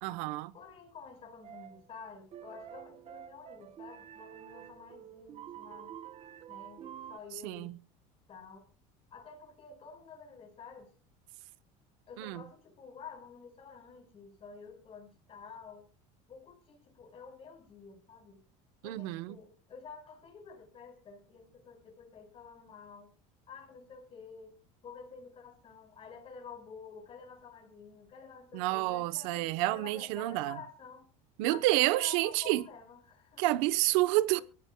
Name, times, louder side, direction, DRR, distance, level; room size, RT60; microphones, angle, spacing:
voice 1, 0.0-0.5 7.4-7.8 12.2-12.4 18.8-19.4 28.5-30.6 31.4-32.7 33.4-34.4, right 18 dB, 75° right, 0.9 m, -29 dB
voice 2, 0.5-5.9 6.5-7.7 8.3-8.7 9.1-10.9 12.1-15.9 16.3-18.4 18.8-23.1 23.5-24.6 24.8-31.1 31.5-33.8 34.3-34.4, left 5 dB, 35° left, 4.9 m, -50 dB
sound 1, 1.4-1.9 2.3-7.2, right 10 dB, 40° right, 1.1 m, -48 dB
24.0 x 13.5 x 2.3 m
supercardioid pair, 120°, 17 cm